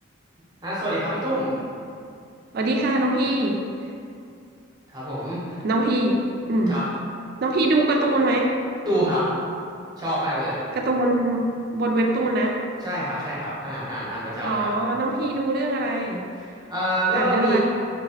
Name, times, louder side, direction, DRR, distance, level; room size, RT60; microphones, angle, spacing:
voice 1, 0.6-1.5 4.9-5.6 6.7-6.8 8.8-9.3 10.0-10.6 12.8-14.7 16.4-17.6, right 1 dB, 20° right, -9 dB, 0.7 m, -26 dB
voice 2, 2.5-3.6 5.6-6.1 6.5-6.8 7.4-8.5 10.8-12.6 14.4-16.2 17.1-17.6, right 2 dB, 50° right, 1 dB, 0.3 m, -23 dB
3.6 x 2.8 x 2.8 m, 2.4 s
head